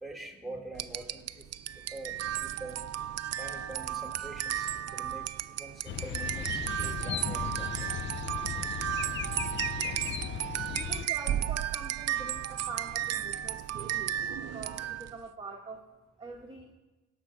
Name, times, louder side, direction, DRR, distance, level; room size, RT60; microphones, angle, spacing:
voice 1, 0.0-1.4 1.9-2.8 3.4-7.9, right 2 dB, ahead, 4 dB, 1.8 m, -44 dB
sound 1, 0.8-15.2, right 11 dB, 55° right, 0.5 m, -34 dB
sound 2, 5.9-11.1, left 9 dB, 40° left, 0.4 m, -36 dB
voice 2, 10.7-15.9 16.2-16.7, right 3 dB, 15° right, 0 dB, 1.1 m, -45 dB
17.0 x 6.0 x 4.6 m, 1.2 s
cardioid pair, 90°, 30 cm